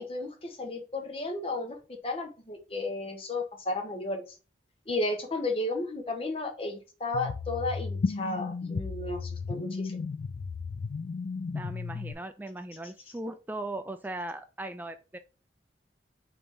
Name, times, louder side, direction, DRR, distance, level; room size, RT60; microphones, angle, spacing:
voice 1, 0.0-1.8 2.0-4.2 4.9-10.0, left 2 dB, 30° left, 4 dB, 0.8 m, -33 dB
sound 1, 7.1-12.1, left 4 dB, 60° left, 0.4 m, -34 dB
voice 2, 11.5-15.2, right 1 dB, 10° right, 9 dB, 0.3 m, -38 dB
5.3 x 3.0 x 3.1 m, 0.33 s
head